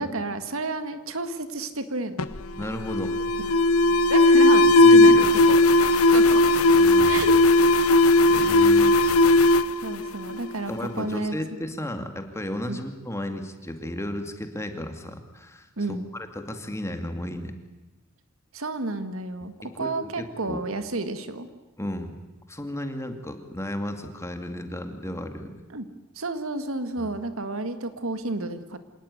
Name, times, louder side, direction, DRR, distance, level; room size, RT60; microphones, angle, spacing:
voice 1, 0.0-2.3 4.1-5.6 6.1-6.4 7.0-7.3 9.8-11.4 12.7-12.8 15.8-16.1 18.5-21.5 25.7-25.9 26.1-28.8, right 2 dB, 70° right, 10 dB, 2.0 m, -31 dB
Alarm, 2.2-10.8, left 2 dB, 80° left, 1.2 m, -17 dB
voice 2, 2.5-3.1 4.6-5.4 6.8-7.3 8.3-9.0 10.7-17.5 19.8-20.6 21.8-22.1 22.5-25.6 27.0-27.1, left 1 dB, 15° left, 6 dB, 2.3 m, -34 dB
27.0 x 18.5 x 9.7 m, 1.1 s
head